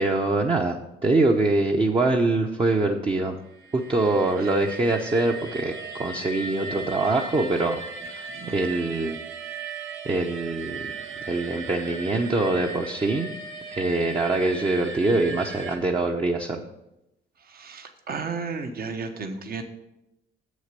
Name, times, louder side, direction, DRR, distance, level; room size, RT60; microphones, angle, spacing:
voice 1, 0.0-3.4 3.7-7.8 8.1-9.2 10.0-10.9 11.3-13.3 13.7-16.6, right 2 dB, 25° right, 2 dB, 0.8 m, -24 dB
sound 1, 3.5-15.8, right 4 dB, 75° right, 1.0 m, -37 dB
voice 2, 17.5-19.6, right 4 dB, 50° right, 6 dB, 1.1 m, -33 dB
7.4 x 6.4 x 6.7 m, 0.89 s
cardioid pair, 90°, 20 cm